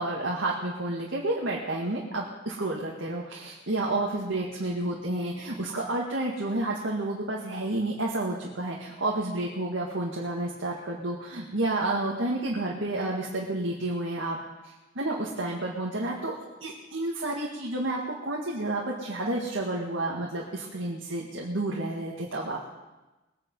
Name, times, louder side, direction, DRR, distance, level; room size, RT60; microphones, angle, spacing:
voice 1, 0.0-14.4 14.6-16.4 16.6-22.6, right 2 dB, 85° right, -3 dB, 2.0 m, -30 dB
21.0 x 9.4 x 5.5 m, 1.1 s
head